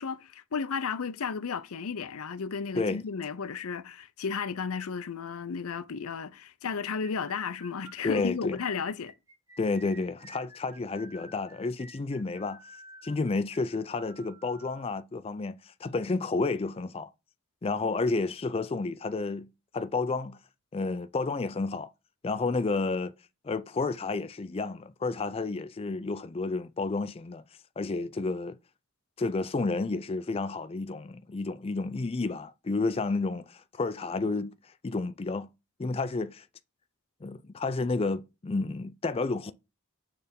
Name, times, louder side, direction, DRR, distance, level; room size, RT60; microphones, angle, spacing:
voice 1, 0.0-9.1, left 5 dB, 85° left, 0.6 m, -34 dB
sound 1, 6.8-14.8, right 1 dB, 15° right, 0.9 m, -52 dB
voice 2, 8.0-8.6 9.6-12.6 13.0-17.1 17.6-19.5 19.7-20.4 20.7-21.9 22.2-23.1 23.4-27.4 27.8-28.6 29.2-34.5 34.8-35.5 35.8-36.5 37.2-39.5, left 3 dB, 25° left, 0.4 m, -31 dB
6.7 x 3.4 x 5.2 m
head